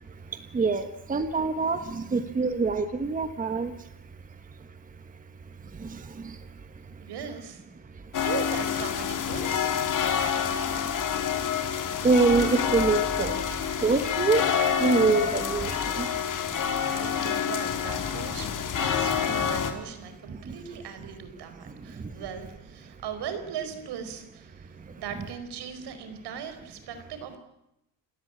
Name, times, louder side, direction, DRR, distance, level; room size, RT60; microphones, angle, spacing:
voice 1, 0.5-3.7 5.8-5.9 12.0-13.4 13.8-14.4 14.8-15.7 16.0-16.1 19.0-19.1, right 4 dB, 20° right, 9 dB, 1.2 m, -24 dB
voice 2, 7.0-7.6 8.2-10.0 16.9-27.4, right 7 dB, 70° right, 9 dB, 4.7 m, -39 dB
sound 1, 8.1-19.7, left 8 dB, 45° left, 2.9 m, -27 dB
28.5 x 17.5 x 8.8 m, 0.86 s
cardioid pair, 150°, 41 cm